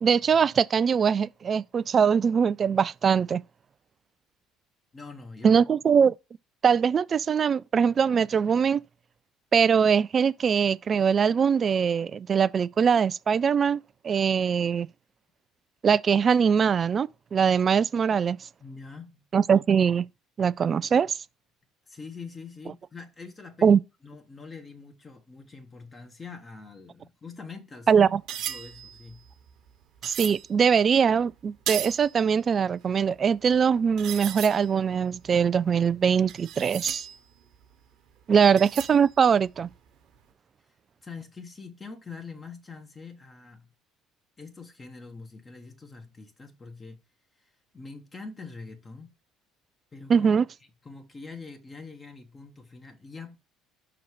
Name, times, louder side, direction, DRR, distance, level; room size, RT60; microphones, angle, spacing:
voice 1, 0.0-3.4 5.4-6.1 6.6-8.8 9.5-13.8 14.0-14.9 15.8-18.5 19.3-20.0 20.4-21.2 23.6-23.8 27.9-28.2 30.0-37.0 38.3-39.7 50.1-50.5, right 7 dB, 40° right, 0.3 m, -22 dB
voice 2, 4.9-5.5 18.6-19.2 21.9-28.1 28.5-29.3 41.0-43.7 44.4-47.0 47.4-49.1 49.9-50.4 50.8-53.4, left 4 dB, 30° left, 1.5 m, -44 dB
sound 1, 28.0-30.5 31.1-32.1 32.4-32.5 33.2-33.3 33.4-33.6 34.0-34.7 35.2-37.6 38.6-39.2 39.5-39.7, right 10 dB, 60° right, 1.2 m, -36 dB
5.7 x 3.9 x 4.9 m
hypercardioid pair, 65°, 0 cm